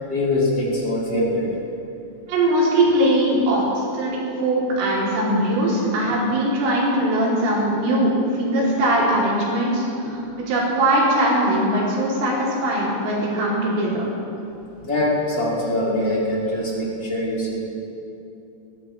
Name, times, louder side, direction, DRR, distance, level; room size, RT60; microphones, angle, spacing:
voice 1, 0.0-1.5 10.0-10.3 11.7-11.9 14.8-17.6, left 1 dB, 30° left, -6 dB, 2.3 m, -23 dB
voice 2, 2.3-10.2 10.5-14.1, right 1 dB, 90° right, -6 dB, 5.8 m, -21 dB
22.0 x 14.5 x 3.3 m, 2.9 s
omnidirectional pair, 5.6 m